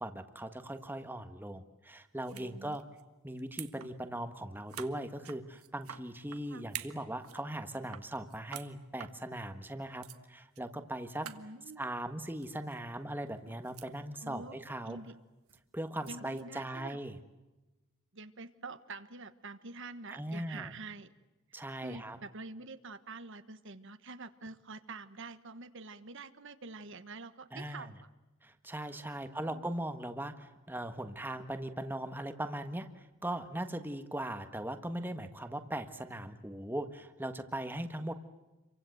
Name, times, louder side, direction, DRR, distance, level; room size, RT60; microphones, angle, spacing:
voice 1, 0.0-2.9 3.2-11.3 11.8-15.0 15.7-17.1 20.1-20.7 21.5-22.2 27.5-27.9 28.4-38.1, right 1 dB, 10° right, 8 dB, 1.5 m, -39 dB
sound 1, 2.2-2.5 2.7-3.0 3.4-4.2 4.7-6.4 6.7-7.5 7.7-8.7 9.0-9.1 9.7-9.8 10.0-10.2 10.6-10.7 10.9-11.0 11.2-11.4 12.4-12.9 13.3-14.0 14.3-14.6 15.5-16.4, right 10 dB, 75° right, 1.6 m, -47 dB
voice 2, 2.3-2.8 6.5-6.7 11.2-11.9 14.2-14.6 14.9-15.1 16.1-17.0 18.1-21.1 21.5-28.1 29.2-29.7 38.0-38.1, right 3 dB, 55° right, 11 dB, 1.3 m, -47 dB
29.0 x 24.0 x 7.9 m, 1.1 s
head